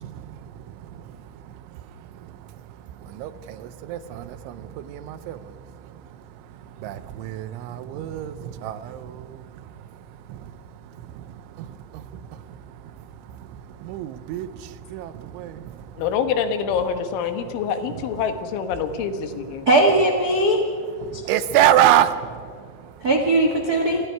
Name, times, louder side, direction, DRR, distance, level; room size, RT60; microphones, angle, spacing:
voice 1, 0.0-16.0 17.5-17.6 17.9-18.0 19.6-19.7 21.0-23.1, right 11 dB, 85° right, 13 dB, 3.3 m, -28 dB
voice 2, 16.0-19.7, left 7 dB, 85° left, 8 dB, 3.9 m, -26 dB
voice 3, 19.6-20.6 21.1-21.2 23.0-24.0, right 1 dB, 65° right, 2 dB, 0.9 m, -19 dB
28.5 x 26.0 x 4.7 m, 2.2 s
omnidirectional pair, 5.3 m